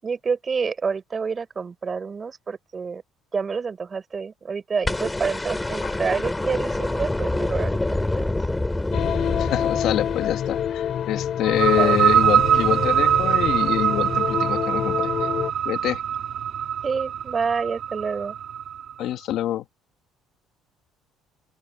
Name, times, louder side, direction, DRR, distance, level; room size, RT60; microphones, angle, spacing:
voice 1, 0.0-3.0 3.3-8.3 11.8-12.0 16.8-18.4, right 5 dB, 30° right, 5.3 m, -28 dB
sound 1, 4.8-11.0 12.6-12.7, left 2 dB, 10° left, 2.9 m, -27 dB
sound 2, 8.9-15.5, left 9 dB, 50° left, 4.1 m, -27 dB
voice 2, 9.4-15.3 15.6-16.0 19.0-19.6, left 12 dB, 65° left, 1.5 m, -26 dB
sound 3, 11.4-18.9, right 9 dB, 50° right, 2.0 m, -23 dB
open air
cardioid pair, 125°, 0 cm